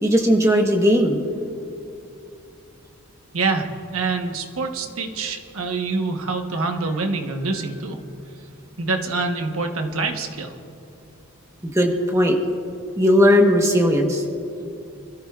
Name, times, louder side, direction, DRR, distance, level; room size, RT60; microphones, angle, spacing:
voice 1, 0.0-1.3 11.7-12.4 13.0-14.2, equal, 15° right, 2 dB, 1.2 m, -17 dB
voice 2, 3.3-8.0 8.8-10.5, right 3 dB, 80° right, 4 dB, 1.3 m, -26 dB
26.0 x 13.5 x 2.5 m, 2.8 s
head